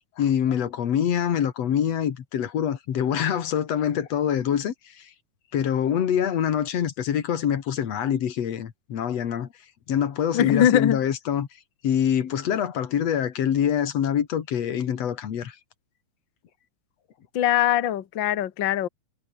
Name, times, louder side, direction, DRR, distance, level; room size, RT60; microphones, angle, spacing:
voice 1, 0.2-5.1 5.5-9.5 9.9-11.5 11.8-15.6, left 9 dB, 55° left, 2.6 m, -25 dB
voice 2, 10.3-11.0 17.3-18.9, left 11 dB, 75° left, 1.0 m, -21 dB
omnidirectional pair, 4.0 m